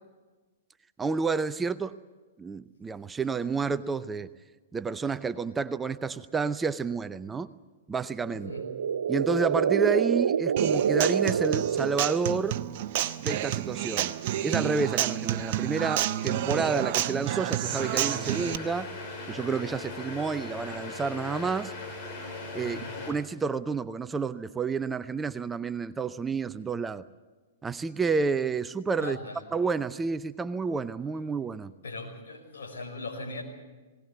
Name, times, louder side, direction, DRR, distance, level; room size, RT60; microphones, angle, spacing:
voice 1, 1.0-2.0 2.4-4.3 4.7-7.5 7.9-8.5 9.1-12.6 13.2-14.1 14.4-18.9 19.3-21.7 22.5-27.0 27.6-29.2 29.5-31.7, right 5 dB, 15° right, 13 dB, 0.6 m, -30 dB
sound 1, 8.2-12.6, right 7 dB, 70° right, 0.6 m, -27 dB
voice 2, 8.3-8.7 22.6-23.0 29.0-29.4 31.8-33.4, left 2 dB, 70° left, 2 dB, 5.6 m, -39 dB
Human voice / Acoustic guitar, 10.6-18.5, right 12 dB, 50° right, 0.9 m, -30 dB
sound 2, 17.6-23.1, left 2 dB, 35° left, 5.1 m, -39 dB
19.5 x 18.5 x 8.4 m, 1.3 s
hypercardioid pair, 110°, 0 cm